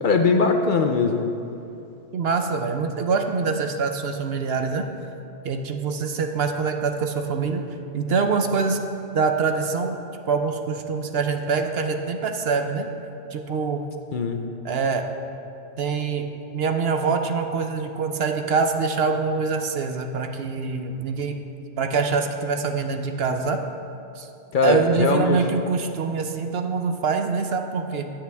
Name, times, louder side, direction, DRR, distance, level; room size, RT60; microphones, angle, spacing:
voice 1, 0.0-1.3 14.1-14.5 24.5-25.5, left 4 dB, 55° left, 5 dB, 0.8 m, -21 dB
voice 2, 2.1-4.8 5.4-7.6 7.9-8.8 9.1-10.0 10.3-12.9 13.3-13.8 14.6-15.0 15.8-16.3 16.5-21.4 21.8-23.6 24.2-24.3 24.6-28.1, right 5 dB, 65° right, 5 dB, 0.9 m, -24 dB
16.0 x 9.2 x 3.5 m, 2.8 s
omnidirectional pair, 1.1 m